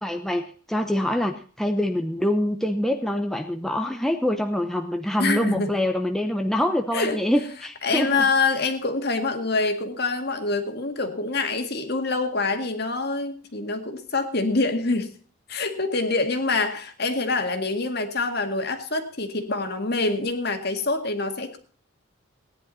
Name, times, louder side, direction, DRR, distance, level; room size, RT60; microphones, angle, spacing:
voice 1, 0.0-8.2, left 1 dB, ahead, 4 dB, 0.8 m, -25 dB
voice 2, 5.2-5.7 6.9-7.2 7.8-15.1 15.5-21.6, left 3 dB, 50° left, 6 dB, 2.0 m, -25 dB
18.0 x 10.5 x 4.2 m, 0.43 s
head